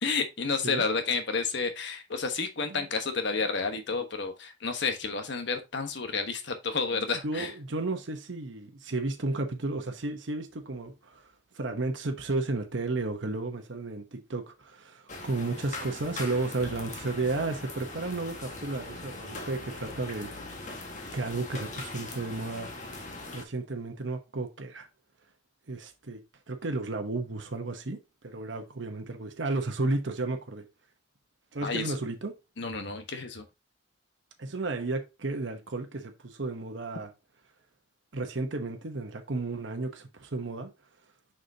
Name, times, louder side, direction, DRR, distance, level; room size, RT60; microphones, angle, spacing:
voice 1, 0.0-7.5 31.6-31.8 32.6-33.4, left 4 dB, 65° left, 1.2 m, -30 dB
voice 2, 6.9-11.3 11.5-20.3 21.1-23.0 23.3-24.9 25.7-30.7 31.5-32.3 34.4-37.1 38.1-40.7, right 2 dB, 70° right, 1.0 m, -33 dB
sound 1, 15.1-23.4, left 2 dB, 40° left, 1.5 m, -41 dB
6.6 x 5.8 x 2.8 m
head